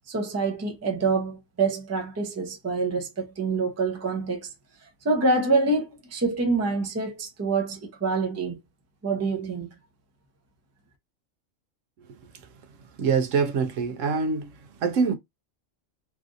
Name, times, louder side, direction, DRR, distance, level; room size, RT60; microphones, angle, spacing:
voice 1, 0.1-4.5 5.0-8.6 9.0-9.7, right 3 dB, 20° right, 0.5 m, -26 dB
voice 2, 13.0-15.1, right 5 dB, 75° right, 1.0 m, -25 dB
3.2 x 2.5 x 2.4 m
omnidirectional pair, 1.4 m